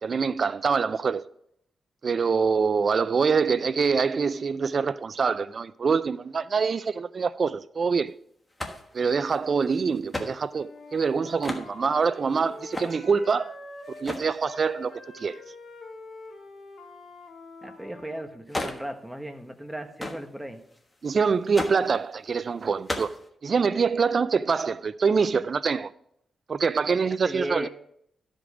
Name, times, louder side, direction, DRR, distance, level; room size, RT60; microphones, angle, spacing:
voice 1, 0.0-1.2 2.0-8.1 8.9-13.5 14.0-15.4 21.0-23.1 23.4-25.9 26.5-27.7, right 5 dB, 50° right, 0.3 m, -25 dB
sound 1, 8.5-10.3 11.0-11.1 11.3-11.7 12.4-13.0 13.8-14.4 18.5-19.0 19.2-19.3 19.7-19.8 20.0-22.0 22.6-23.3, left 1 dB, 15° left, 1.3 m, -36 dB
Wind instrument woodwind instrument, 10.5-14.1 14.4-18.3, left 3 dB, 60° left, 1.7 m, -45 dB
voice 2, 17.6-20.6 27.0-27.7, equal, 5° right, 1.2 m, -36 dB
12.5 x 5.2 x 4.9 m
cardioid pair, 85°, 0 cm